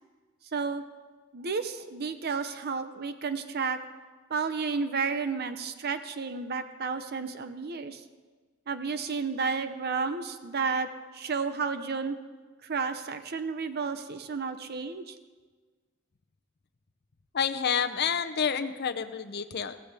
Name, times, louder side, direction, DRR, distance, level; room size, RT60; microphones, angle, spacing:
voice 1, 0.5-0.8 1.3-3.8 4.3-8.0 8.7-12.2 12.6-15.2, right 5 dB, 50° right, 10 dB, 0.6 m, -32 dB
voice 2, 17.3-19.8, left 7 dB, 55° left, 9 dB, 0.6 m, -29 dB
15.5 x 15.5 x 3.4 m, 1.4 s
head